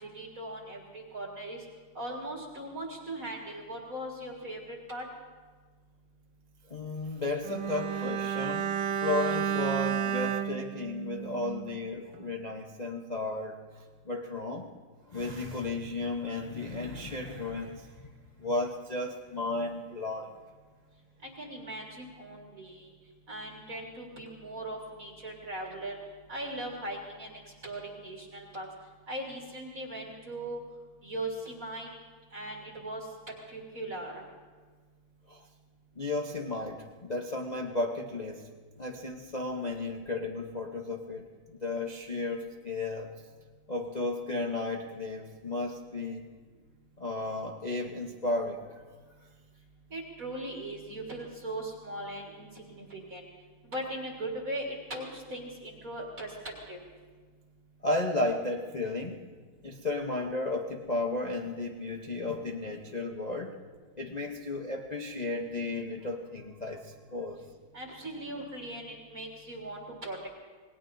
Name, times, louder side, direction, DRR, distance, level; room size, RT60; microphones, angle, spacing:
voice 1, 0.0-1.6 1.9-5.0 21.2-22.9 23.3-26.0 26.3-28.7 29.1-30.6 31.0-31.9 32.3-33.1 33.5-34.2 49.9-53.3 53.6-56.3 56.7-56.8 67.7-70.3, right 1 dB, 40° right, -1 dB, 2.1 m, -39 dB
voice 2, 6.7-8.8 9.0-13.6 14.0-14.7 15.1-18.1 18.4-20.4 35.3-35.5 36.0-38.5 38.8-43.1 43.7-46.3 47.0-48.8 57.8-59.2 59.6-63.6 64.0-67.4, left 2 dB, 85° left, -1 dB, 0.3 m, -34 dB
Bowed string instrument, 7.4-11.9 12.1-12.3, right 8 dB, 80° right, 1.5 m, -32 dB
27.5 x 20.0 x 2.7 m, 1.5 s
omnidirectional pair, 2.3 m